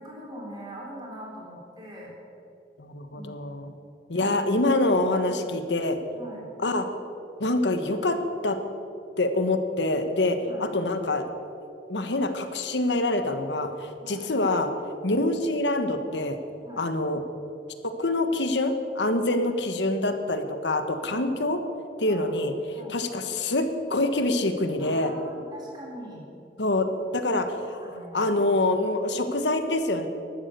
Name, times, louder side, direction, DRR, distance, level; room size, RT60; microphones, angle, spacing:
voice 1, 0.0-2.1 3.1-3.3 4.1-4.4 5.2-5.5 6.1-6.5 10.4-10.7 14.0-14.3 16.6-16.9 21.1-21.3 22.1-23.0 24.8-26.3 27.8-28.2, right 1 dB, 25° right, -2 dB, 4.0 m, -42 dB
voice 2, 2.8-3.7 4.1-6.0 6.6-6.8 7.4-8.2 8.4-8.6 9.2-11.2 11.9-14.7 15.0-16.4 16.8-17.2 17.8-21.6 22.0-22.5 22.9-25.1 26.6-26.9 27.1-27.8 28.1-30.1, left 2 dB, 90° left, 8 dB, 1.4 m, -25 dB
15.0 x 12.0 x 6.8 m, 2.7 s
head